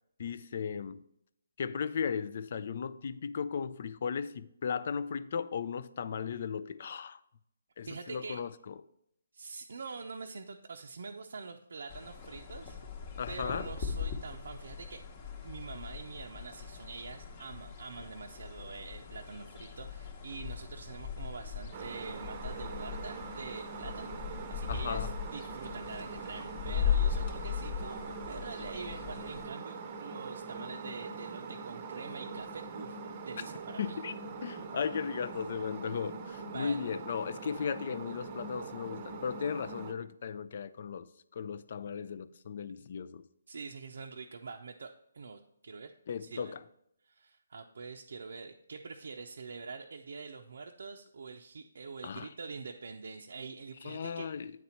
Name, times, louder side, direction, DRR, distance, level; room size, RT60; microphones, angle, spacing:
voice 1, 0.2-1.0 1.6-7.2 7.8-8.8 13.2-13.7 24.7-25.1 33.8-34.1 34.4-41.1 41.3-43.2 46.1-46.6 52.0-52.3 53.8-54.5, left 6 dB, 50° left, 0.4 m, -36 dB
voice 2, 7.9-8.4 9.3-12.8 13.3-15.0 15.4-34.0 36.4-36.8 43.5-45.9 46.2-46.5 47.0-54.3, right 4 dB, 70° right, 0.5 m, -45 dB
sound 1, 11.9-29.5, left 7 dB, 30° left, 1.0 m, -38 dB
sound 2, 21.7-39.9, right 4 dB, 30° right, 0.7 m, -43 dB
9.2 x 4.2 x 4.3 m
hypercardioid pair, 160°, 0 cm